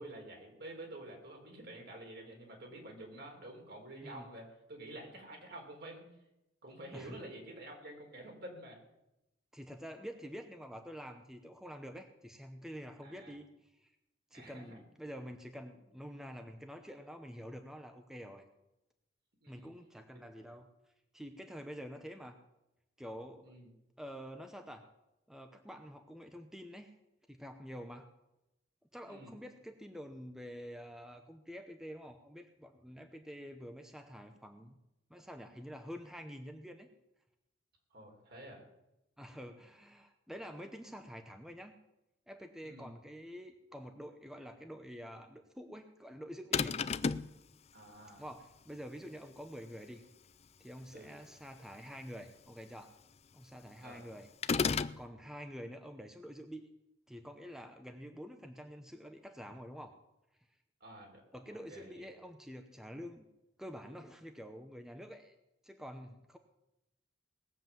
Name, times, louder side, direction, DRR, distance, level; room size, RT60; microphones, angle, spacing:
voice 1, 0.0-6.0 6.6-8.8 13.0-13.4 14.3-14.8 19.4-19.7 20.1-20.2 20.5-20.6 23.4-23.7 29.1-29.3 37.9-38.7 42.6-42.9 47.7-48.2 50.9-51.1 53.8-54.1 60.8-61.2 61.5-62.0, right 1 dB, 60° right, 1 dB, 4.1 m, -49 dB
voice 2, 9.5-13.9 14.3-18.4 19.5-20.7 21.1-22.4 23.0-23.5 24.0-24.8 25.3-26.9 27.3-28.1 28.9-34.8 35.1-36.9 39.2-41.8 42.3-46.8 48.2-50.0 50.6-52.9 53.3-54.3 55.0-56.7 57.1-59.9 61.3-63.3 63.6-65.4 65.6-66.4, equal, 5° right, 6 dB, 0.8 m, -48 dB
sound 1, 46.5-47.3 54.4-55.0, left 5 dB, 35° left, 0.4 m, -31 dB
19.0 x 7.6 x 7.4 m, 0.90 s
head